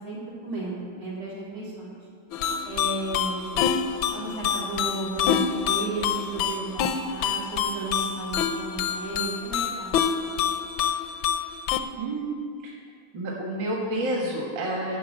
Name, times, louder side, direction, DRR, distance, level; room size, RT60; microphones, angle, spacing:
voice 1, 0.0-2.0 2.6-3.6 4.1-10.4, right 3 dB, 85° right, -8 dB, 4.2 m, -34 dB
sound 1, 2.3-11.8, left 8 dB, 75° left, 1.3 m, -27 dB
voice 2, 12.0-12.7 13.1-15.0, right 1 dB, 60° right, -3 dB, 2.1 m, -29 dB
11.0 x 5.8 x 8.6 m, 2.1 s
omnidirectional pair, 2.3 m